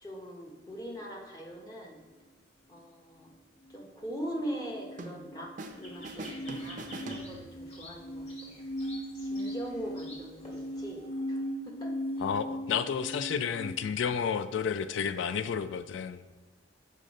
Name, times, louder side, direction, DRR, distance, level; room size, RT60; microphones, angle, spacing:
voice 1, 0.0-2.0 2.7-3.3 3.7-8.6 9.2-12.0, equal, 20° left, 0 dB, 0.8 m, -41 dB
sound 1, 4.1-13.7, equal, 60° left, 1.9 m, -38 dB
sound 2, 5.0-5.8 6.0-7.8, right 2 dB, 45° right, 0.5 m, -43 dB
sound 3, 5.7-11.1, left 1 dB, 35° left, 1.8 m, -50 dB
voice 2, 12.2-16.3, left 7 dB, 75° left, 13 dB, 0.3 m, -31 dB
6.5 x 3.8 x 5.2 m, 1.1 s
head